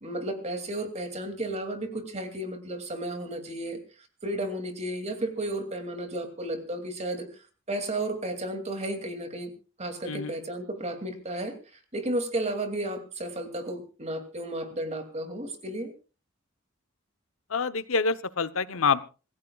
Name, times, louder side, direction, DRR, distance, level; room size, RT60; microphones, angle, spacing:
voice 1, 0.0-3.8 4.2-7.3 7.7-9.5 9.8-11.6 11.9-15.9, right 1 dB, 35° right, 6 dB, 2.7 m, -33 dB
voice 2, 17.5-19.0, left 5 dB, 85° left, 13 dB, 0.9 m, -26 dB
26.5 x 15.5 x 2.4 m, 0.34 s
head